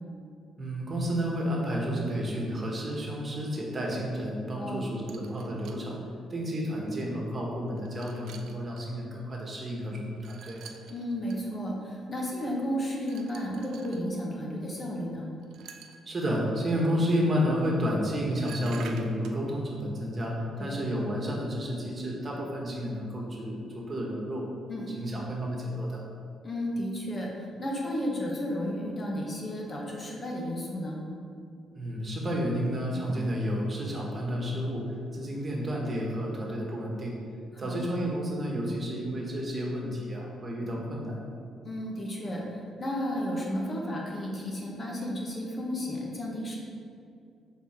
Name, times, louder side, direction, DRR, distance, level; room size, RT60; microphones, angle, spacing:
voice 1, 0.6-6.0 6.3-10.6 16.0-24.5 24.9-26.0 31.7-37.2 37.6-41.2, equal, 35° right, -2 dB, 1.4 m, -31 dB
voice 2, 4.5-4.9 10.9-15.3 20.6-20.8 24.7-24.9 26.4-31.0 37.5-37.8 41.6-46.6, equal, 35° left, -2 dB, 1.2 m, -33 dB
sound 1, 5.1-5.8 6.7-6.8 7.7-8.9 10.2-11.4 13.0-14.1 15.4-16.2 17.9-18.0 18.3-19.4, right 6 dB, 75° right, 0.5 m, -48 dB
6.9 x 3.9 x 4.4 m, 2.5 s
cardioid pair, 90°, 0 cm